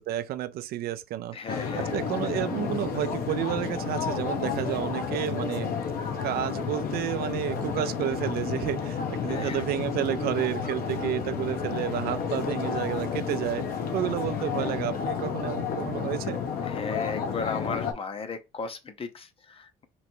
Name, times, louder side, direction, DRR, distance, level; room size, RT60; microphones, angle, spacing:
voice 1, 0.0-16.4, right 12 dB, 65° right, 0.4 m, -31 dB
voice 2, 1.3-2.1 9.3-9.6 16.6-19.8, left 4 dB, 35° left, 0.6 m, -36 dB
sound 1, 1.5-17.9, left 6 dB, 60° left, 0.8 m, -31 dB
3.1 x 2.6 x 4.3 m
cardioid pair, 110°, 17 cm